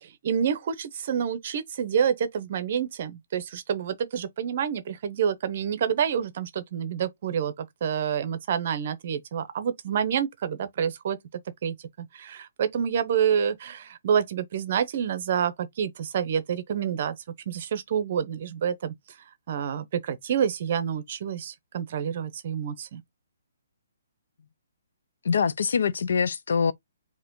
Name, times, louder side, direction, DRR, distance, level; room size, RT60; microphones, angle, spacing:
voice 1, 0.0-11.2 11.6-17.1 17.5-18.9 19.5-23.0, right 8 dB, 30° right, 0.7 m, -28 dB
voice 2, 25.2-26.7, left 6 dB, 55° left, 0.5 m, -24 dB
4.8 x 2.9 x 3.8 m
hypercardioid pair, 180°, 0 cm